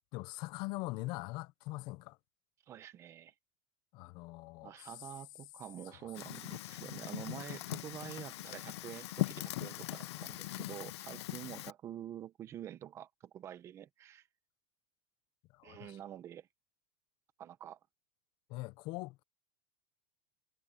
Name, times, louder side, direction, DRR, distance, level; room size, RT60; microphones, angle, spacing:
voice 1, 0.1-2.2 3.9-4.9 5.9-6.3 10.0-10.3 15.5-16.0 18.5-19.2, left 21 dB, 30° left, 0.5 m, -43 dB
voice 2, 2.7-3.3 4.6-14.3 15.6-16.5 17.4-17.8, right 11 dB, 20° right, 0.8 m, -47 dB
Fire, 6.1-11.7, left 16 dB, 85° left, 1.0 m, -40 dB
supercardioid pair, 180°, 14 cm